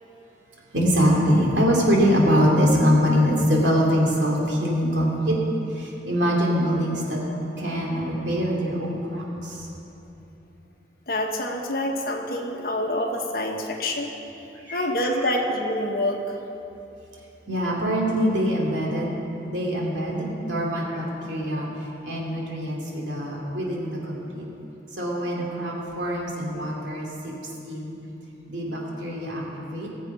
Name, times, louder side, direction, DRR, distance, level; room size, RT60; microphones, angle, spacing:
voice 1, 0.7-5.3 5.8-7.2 7.6-9.6 14.7-14.8 17.5-19.2 19.5-21.7 22.0-24.4 25.0-27.3 27.6-27.9 28.5-29.9, equal, 90° right, -3 dB, 2.5 m, -23 dB
voice 2, 11.1-14.1 14.7-16.4, left 1 dB, 55° left, 2 dB, 1.3 m, -26 dB
18.5 x 7.4 x 5.4 m, 3.0 s
head